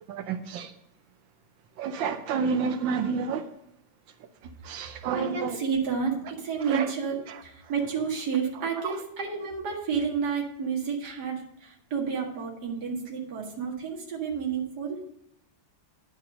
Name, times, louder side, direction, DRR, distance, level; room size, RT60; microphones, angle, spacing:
voice 1, 0.1-0.7 1.8-3.4 4.7-5.5 6.7-6.9, right 6 dB, 80° right, 1.4 m, -29 dB
voice 2, 5.1-15.0, right 6 dB, 55° right, 2.4 m, -30 dB
9.5 x 5.9 x 6.3 m
omnidirectional pair, 2.1 m